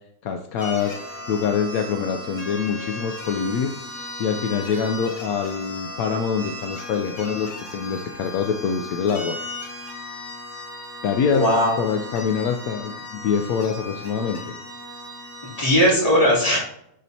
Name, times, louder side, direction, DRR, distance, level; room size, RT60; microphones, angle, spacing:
voice 1, 0.2-1.0 1.3-9.4 11.0-11.5 11.8-14.6, left 6 dB, 75° left, 5 dB, 1.0 m, -25 dB
sound 1, 0.6-15.7, left 1 dB, 55° left, 2.3 m, -36 dB
voice 2, 11.3-11.8 15.6-16.6, equal, 25° left, -7 dB, 2.9 m, -18 dB
11.5 x 4.3 x 2.7 m, 0.76 s
omnidirectional pair, 1.5 m